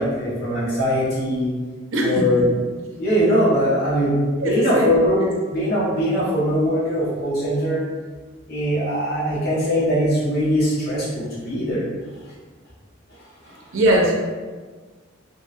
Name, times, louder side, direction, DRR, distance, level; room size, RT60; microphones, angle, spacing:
voice 1, 0.0-1.5 2.0-2.5 3.0-7.8 8.5-11.9 13.4-13.7, equal, 50° left, -9 dB, 1.0 m, -21 dB
voice 2, 1.9-2.3 4.4-4.9 5.2-5.3 13.7-14.1, right 1 dB, 85° right, -1 dB, 0.6 m, -20 dB
2.8 x 2.8 x 2.4 m, 1.4 s
head